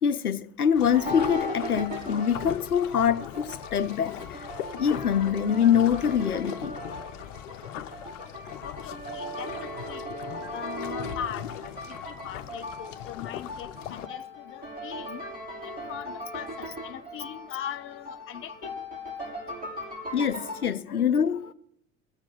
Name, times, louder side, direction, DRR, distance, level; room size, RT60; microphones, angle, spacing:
voice 1, 0.0-4.5 4.8-7.0 20.1-21.5, left 8 dB, 85° left, 0.7 m, -25 dB
sound 1, 0.8-14.1, left 11 dB, 60° left, 0.9 m, -40 dB
sound 2, 0.9-20.7, equal, 20° right, 6.3 m, -38 dB
Stream, 3.2-3.3 4.4-4.5 5.6-5.7 6.8-6.9 8.0-8.1 9.2-9.3 10.4-10.5 11.6-11.7 12.8-12.9 14.0-14.1 15.2-15.3 16.4-16.5 17.6-17.7, right 6 dB, 50° right, 1.8 m, -47 dB
voice 2, 8.6-10.0 10.5-12.0 12.2-15.2 15.6-18.8, left 10 dB, 30° left, 0.8 m, -40 dB
14.5 x 7.4 x 9.0 m
figure-of-eight pair, 75°, 44 cm